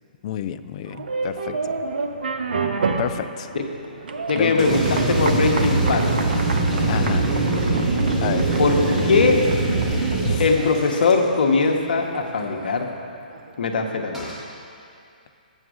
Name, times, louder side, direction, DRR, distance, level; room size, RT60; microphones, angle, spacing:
voice 1, 0.2-1.7 3.0-3.5 4.3-4.7 6.8-7.3 8.2-8.5 10.2-10.4, left 11 dB, 40° left, 11 dB, 0.4 m, -30 dB
sound 1, 0.9-13.6, right 4 dB, 75° right, 0.8 m, -31 dB
voice 2, 4.3-6.1 8.6-9.4 10.4-12.9 13.6-14.3, left 4 dB, 70° left, 2 dB, 1.0 m, -20 dB
sound 2, 4.6-11.7 12.1-12.2 12.4-12.5 14.1-14.5, equal, 10° right, 1.2 m, -36 dB
sound 3, 4.6-10.5, right 3 dB, 45° right, 1.6 m, -22 dB
7.7 x 7.2 x 6.2 m, 2.5 s
hypercardioid pair, 140°, 5 cm